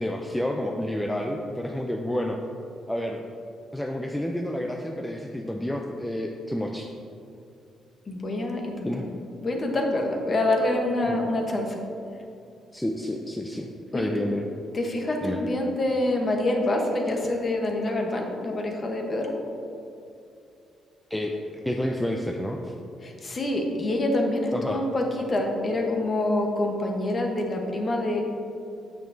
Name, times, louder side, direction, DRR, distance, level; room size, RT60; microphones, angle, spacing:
voice 1, 0.0-2.4 2.9-3.2 3.7-6.9 8.8-9.1 11.1-11.2 12.7-14.5 15.2-15.4 21.1-22.7 24.5-24.8, left 1 dB, 5° left, 1 dB, 0.4 m, -29 dB
voice 2, 8.1-8.9 9.4-11.8 13.9-14.1 14.7-19.3 23.0-28.2, left 1 dB, 30° left, 2 dB, 0.9 m, -26 dB
9.0 x 6.9 x 2.6 m, 2.7 s
cardioid pair, 140°, 0 cm